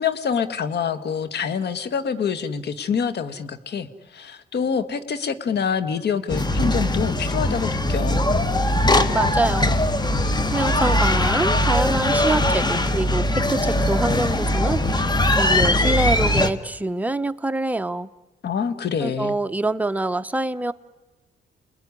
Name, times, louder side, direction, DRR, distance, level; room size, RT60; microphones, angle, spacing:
voice 1, 0.0-8.2 18.4-19.3, left 6 dB, 55° left, 11 dB, 1.7 m, -26 dB
sound 1, 6.3-16.5, left 1 dB, 20° left, 1.5 m, -21 dB
voice 2, 9.1-9.7 10.5-18.1 19.0-20.7, right 2 dB, 10° right, 9 dB, 0.8 m, -25 dB
29.0 x 20.5 x 9.8 m, 1.2 s
cardioid pair, 90°, 20 cm